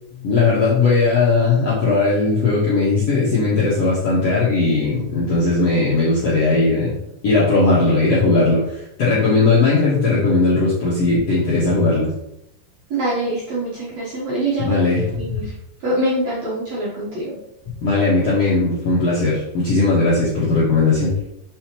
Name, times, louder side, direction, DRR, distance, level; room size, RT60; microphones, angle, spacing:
voice 1, 0.1-6.9 7.2-12.1 14.6-15.4 17.8-21.2, left 3 dB, 70° left, -8 dB, 1.5 m, -18 dB
voice 2, 12.9-14.8 15.2-15.5 15.8-17.4, right 1 dB, 80° right, -8 dB, 1.5 m, -24 dB
7.1 x 5.5 x 3.0 m, 0.82 s
omnidirectional pair, 5.2 m